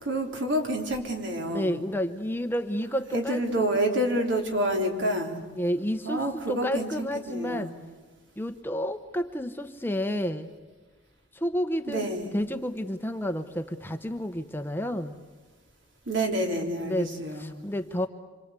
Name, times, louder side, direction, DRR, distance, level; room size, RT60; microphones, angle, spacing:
voice 1, 0.0-1.8 3.1-5.4 6.0-7.7 11.9-12.3 16.1-17.5, right 1 dB, 65° right, 3 dB, 3.8 m, -28 dB
voice 2, 1.5-3.7 5.6-7.7 8.4-10.5 11.3-12.1 12.3-15.1 16.8-18.1, equal, 10° left, 8 dB, 0.9 m, -30 dB
27.0 x 26.0 x 8.3 m, 1.3 s
head